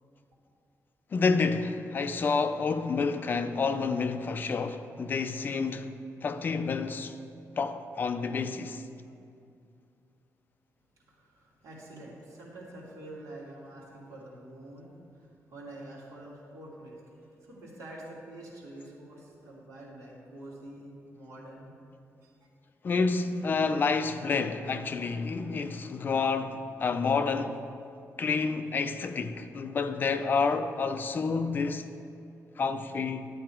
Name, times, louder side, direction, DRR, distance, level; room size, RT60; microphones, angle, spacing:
voice 1, 1.1-5.9 6.2-7.1 7.6-8.8 22.8-27.6 28.2-31.9 32.6-33.3, left 4 dB, 35° left, 0.4 m, -29 dB
voice 2, 11.1-17.2 17.4-21.7 22.2-22.5, right 1 dB, 65° right, 2.6 m, -47 dB
10.5 x 8.5 x 4.4 m
wide cardioid pair, 175°, 6 cm